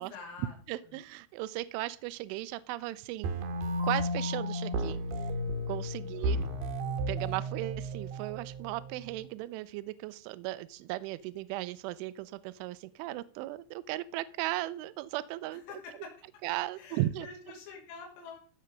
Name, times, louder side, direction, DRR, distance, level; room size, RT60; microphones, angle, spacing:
voice 1, 0.0-0.6 6.0-6.6 15.7-16.1 16.8-18.4, left 5 dB, 80° left, 0 dB, 5.3 m, -47 dB
voice 2, 0.7-3.3 3.8-5.0 5.7-6.4 7.1-15.6 16.4-17.3, right 16 dB, 80° right, 16 dB, 3.0 m, -36 dB
sound 1, 3.2-9.2, equal, 65° right, 2.7 m, -33 dB
15.5 x 7.2 x 5.2 m, 0.41 s
omnidirectional pair, 5.9 m